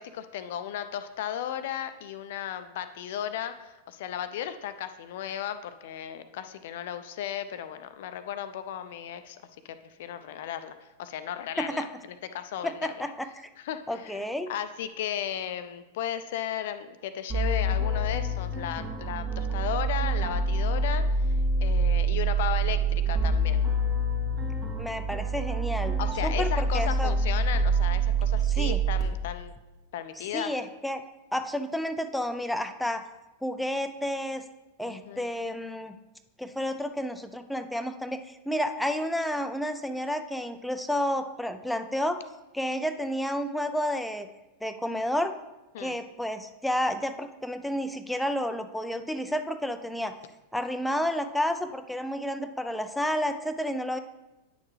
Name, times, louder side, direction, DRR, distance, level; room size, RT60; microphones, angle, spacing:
voice 1, 0.0-9.4 9.6-11.9 12.3-13.1 13.6-14.2 14.5-21.3 21.6-23.6 26.0-29.5 29.9-30.5 34.9-35.3 45.7-46.0, left 10 dB, 55° left, 10 dB, 0.5 m, -35 dB
voice 2, 12.6-13.5 13.9-14.5 24.8-25.9 26.2-27.1 28.5-28.8 30.3-31.0 31.3-33.0 33.4-34.4 34.8-36.0 36.4-42.2 42.5-44.3 44.6-45.3 45.8-50.1 50.5-54.0, equal, 5° left, 7 dB, 0.4 m, -30 dB
sound 1, 17.3-29.0, right 2 dB, 25° right, 1.6 m, -26 dB
9.3 x 6.4 x 3.2 m, 1.0 s
figure-of-eight pair, 90°, 0 cm